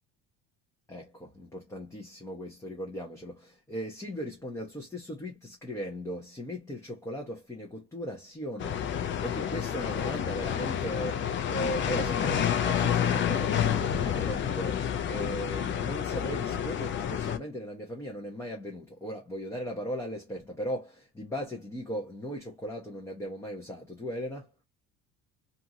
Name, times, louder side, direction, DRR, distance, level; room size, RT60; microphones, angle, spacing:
voice 1, 0.9-8.9 9.2-24.5, equal, 10° left, 0.9 m, -38 dB
sound 1, 8.6-17.4, left 9 dB, 40° left, 0.5 m, -29 dB
2.7 x 2.5 x 2.7 m
cardioid pair, 115°, 30 cm